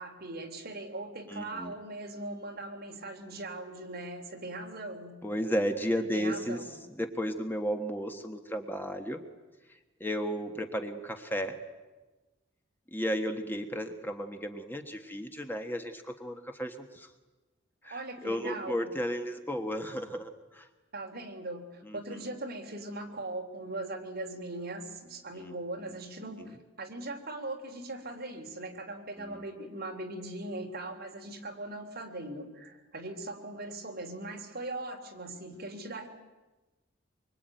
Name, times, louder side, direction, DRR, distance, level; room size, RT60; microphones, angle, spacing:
voice 1, 0.0-5.2 6.0-6.7 17.8-18.9 20.9-36.1, right 2 dB, 50° right, 3 dB, 3.5 m, -40 dB
voice 2, 1.3-1.7 5.2-9.2 9.7-11.6 12.9-17.1 17.8-20.7 21.8-22.3 25.3-25.5 26.4-26.6 29.2-29.4, equal, 10° left, 5 dB, 1.4 m, -34 dB
24.5 x 24.5 x 9.2 m, 1.2 s
head